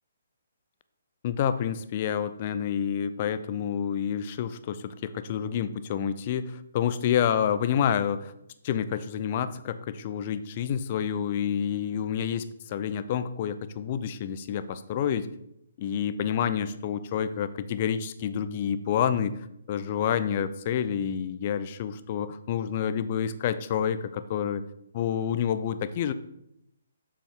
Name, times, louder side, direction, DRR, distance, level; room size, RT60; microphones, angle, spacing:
voice 1, 1.2-8.3 8.6-15.3 15.8-24.7 24.9-26.1, left 8 dB, 35° left, 13 dB, 0.5 m, -28 dB
7.1 x 7.0 x 3.6 m, 0.80 s
figure-of-eight pair, 135°, 0 cm